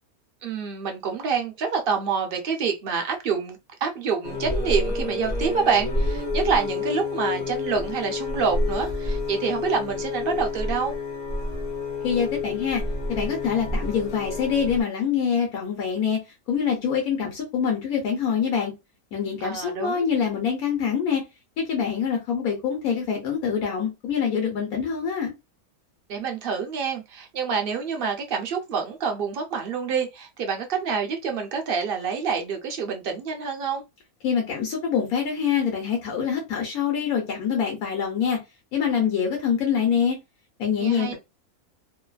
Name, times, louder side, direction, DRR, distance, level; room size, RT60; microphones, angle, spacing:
voice 1, 0.4-10.9 19.4-20.1 26.1-33.8 40.8-41.1, right 6 dB, 60° right, 0.5 m, -27 dB
sound 1, 4.2-14.8, left 3 dB, 35° left, 0.8 m, -28 dB
voice 2, 12.0-12.8 13.1-16.2 16.5-18.7 19.1-21.2 21.6-25.3 34.2-38.4 38.7-40.2 40.6-41.1, left 7 dB, 80° left, 1.3 m, -25 dB
2.9 x 2.3 x 2.3 m
omnidirectional pair, 1.5 m